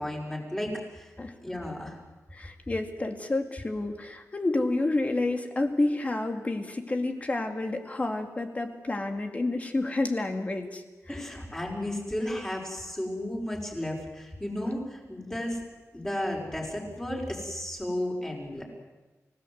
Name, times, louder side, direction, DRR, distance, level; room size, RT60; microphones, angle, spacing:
voice 1, 0.0-1.1 1.4-2.0 11.1-15.6 15.9-18.6, left 1 dB, 10° left, -2 dB, 5.3 m, -33 dB
voice 2, 2.3-10.8 11.1-11.2, left 2 dB, 25° left, 5 dB, 2.1 m, -29 dB
29.5 x 17.0 x 7.9 m, 1.2 s
wide cardioid pair, 170°, 6 cm